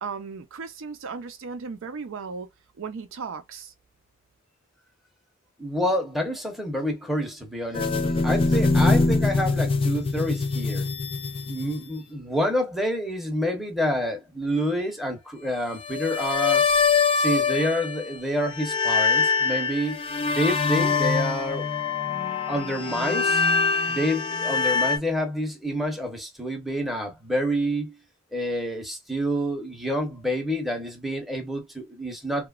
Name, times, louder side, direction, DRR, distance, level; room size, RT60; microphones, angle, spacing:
voice 1, 0.0-2.5 2.8-3.7, right 5 dB, 70° right, 0.5 m, -36 dB
voice 2, 5.6-10.8 11.5-16.6 17.1-20.0 20.3-21.7 22.5-23.4 23.9-28.0 28.3-32.5, equal, ahead, 0.7 m, -28 dB
sound 1, 7.7-12.0 15.8-18.2 18.5-25.0, left 4 dB, 25° left, 0.4 m, -24 dB
2.9 x 2.2 x 2.3 m
head